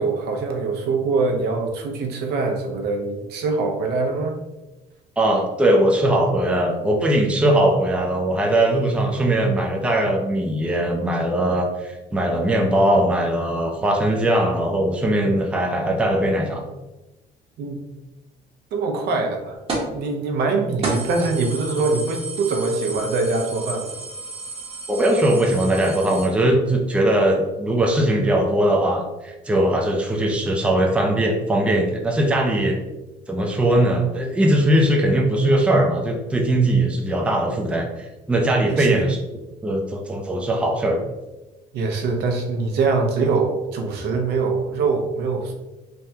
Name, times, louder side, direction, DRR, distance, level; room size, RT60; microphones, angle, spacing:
voice 1, 0.0-4.4 17.6-17.8 18.7-19.6 19.9-23.9 38.6-39.0 41.7-45.5, right 4 dB, 75° right, 3 dB, 0.6 m, -23 dB
voice 2, 5.2-16.7 24.9-32.7 33.3-39.2 39.6-41.0, right 1 dB, 5° right, 1 dB, 0.4 m, -20 dB
sound 1, 19.7-20.0 20.4-20.5 20.8-26.3, right 3 dB, 35° right, 0.9 m, -32 dB
3.4 x 2.1 x 2.7 m, 1.0 s
cardioid pair, 110°, 17 cm